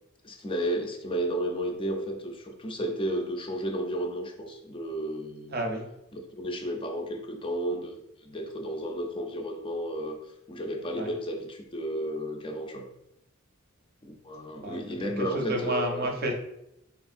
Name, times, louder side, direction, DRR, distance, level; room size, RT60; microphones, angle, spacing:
voice 1, 0.2-5.5 6.1-7.9 8.2-10.2 10.5-12.9 14.0-16.1, equal, 25° left, 2 dB, 0.5 m, -32 dB
voice 2, 5.5-5.9 10.9-11.1 14.6-16.3, right 1 dB, 45° right, 2 dB, 0.6 m, -31 dB
4.2 x 3.4 x 2.5 m, 0.82 s
head